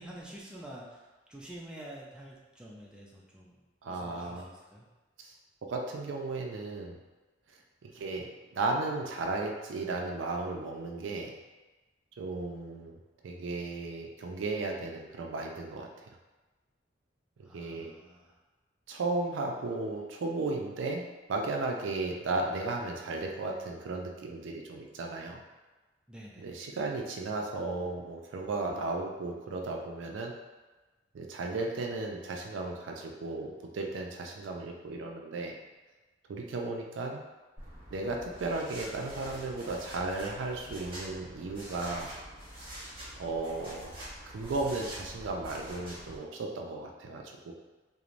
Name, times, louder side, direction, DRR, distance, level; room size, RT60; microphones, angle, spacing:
voice 1, 0.0-4.9 17.4-18.4 26.1-26.6, right 1 dB, 5° right, -5 dB, 0.4 m, -48 dB
voice 2, 3.8-4.5 5.2-5.3 5.7-7.0 7.5-11.4 12.2-16.1 17.5-17.9 18.9-25.4 26.4-30.3 31.1-35.5 36.3-37.3 37.9-42.1 43.2-43.9 44.3-47.5, right 3 dB, 80° right, 1 dB, 0.4 m, -35 dB
sound 1, 37.6-46.2, equal, 30° right, 0.9 m, -46 dB
3.0 x 2.1 x 2.5 m, 1.2 s
head